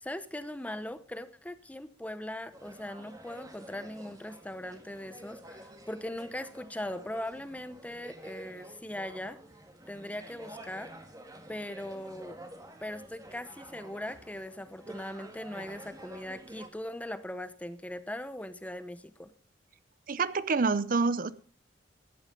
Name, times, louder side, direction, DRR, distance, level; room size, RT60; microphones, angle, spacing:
voice 1, 0.0-9.4 9.9-10.9 11.5-12.4 12.8-19.3, left 1 dB, 10° left, 13 dB, 0.8 m, -40 dB
sound 1, 2.5-16.7, right 1 dB, 20° right, 1.8 m, -49 dB
voice 2, 20.1-21.3, right 4 dB, 50° right, 16 dB, 0.7 m, -27 dB
14.0 x 10.5 x 5.2 m, 0.41 s
head